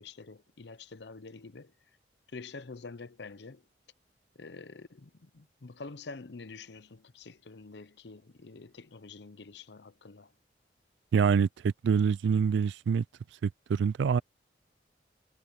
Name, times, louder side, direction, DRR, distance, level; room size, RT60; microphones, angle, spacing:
voice 1, 0.0-1.7 2.3-3.6 4.4-10.3, left 4 dB, 70° left, 0.7 m, -47 dB
voice 2, 11.1-13.0 13.4-14.2, right 6 dB, 80° right, 0.3 m, -26 dB
head